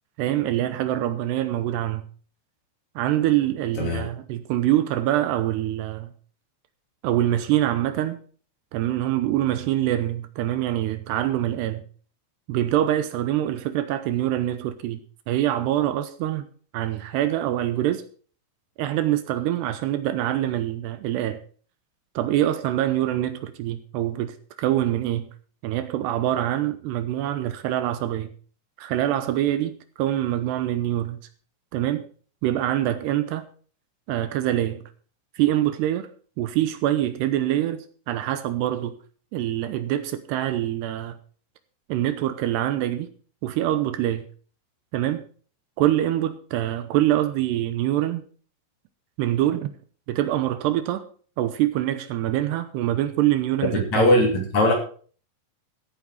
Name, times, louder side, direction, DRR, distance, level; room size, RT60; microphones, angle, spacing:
voice 1, 0.2-2.0 3.0-6.1 7.0-8.2 8.7-11.8 12.5-15.0 15.3-16.5 16.7-18.0 18.8-21.4 22.2-25.3 25.6-28.3 28.8-31.2 31.7-32.0 32.4-33.5 34.1-34.8 35.4-36.1 36.4-38.9 39.3-41.2 41.9-43.1 43.4-44.3 44.9-45.2 45.8-48.2 49.2-49.7 50.1-51.0 51.4-54.1, right 13 dB, 80° right, 2.8 m, -24 dB
voice 2, 3.8-4.1 53.7-54.7, left 1 dB, 45° left, 3.7 m, -20 dB
14.5 x 9.3 x 4.7 m
omnidirectional pair, 5.1 m